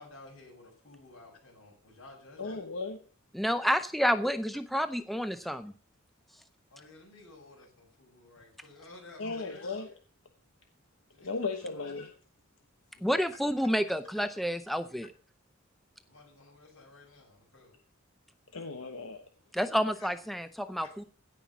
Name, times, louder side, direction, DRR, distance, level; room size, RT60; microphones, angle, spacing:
voice 1, 0.0-2.6 6.7-9.7 11.1-11.9 12.9-13.1 16.1-17.8, left 2 dB, 70° left, 6.6 m, -53 dB
voice 2, 2.4-3.0 9.2-9.9 11.2-12.1 14.1-14.2 18.5-19.2 20.8-21.0, left 3 dB, 85° left, 1.1 m, -36 dB
voice 3, 3.3-5.7 13.0-15.1 19.5-21.0, equal, ahead, 0.6 m, -29 dB
16.5 x 5.7 x 6.0 m
head